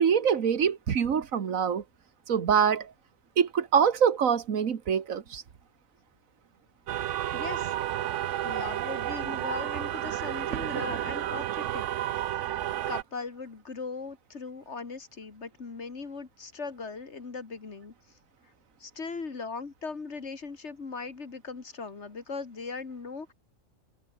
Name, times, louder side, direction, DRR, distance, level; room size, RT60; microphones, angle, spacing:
voice 1, 0.0-1.8 2.3-2.9 3.4-5.4, right 7 dB, 90° right, 1.7 m, -24 dB
sound 1, 6.9-13.0, right 12 dB, 70° right, 0.9 m, -31 dB
voice 2, 7.3-7.7 8.4-11.9 12.5-12.6 12.9-17.9 18.8-23.3, left 4 dB, 60° left, 2.3 m, -39 dB
omnidirectional pair, 1.4 m